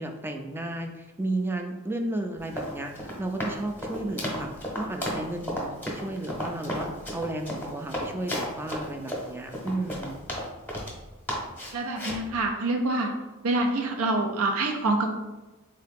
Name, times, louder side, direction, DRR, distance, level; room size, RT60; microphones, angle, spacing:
voice 1, 0.0-4.5 4.7-10.2, right 1 dB, 10° right, 4 dB, 0.3 m, -33 dB
Run, 2.4-11.0 11.3-12.3, equal, 10° left, 0.9 m, -33 dB
voice 2, 11.7-13.1 13.4-15.1, right 2 dB, 75° right, 2 dB, 0.5 m, -26 dB
3.7 x 2.8 x 3.5 m, 1.1 s
head